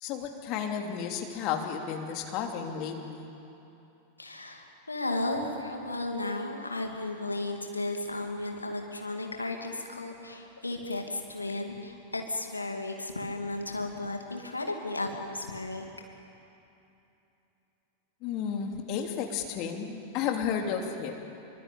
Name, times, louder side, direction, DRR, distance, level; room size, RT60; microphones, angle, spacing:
voice 1, 0.0-3.3 18.2-21.1, left 7 dB, 40° left, 3 dB, 2.9 m, -32 dB
voice 2, 4.2-15.8, left 2 dB, 80° left, 3 dB, 2.6 m, -34 dB
27.0 x 24.0 x 8.8 m, 2.9 s
figure-of-eight pair, 90°, 0 cm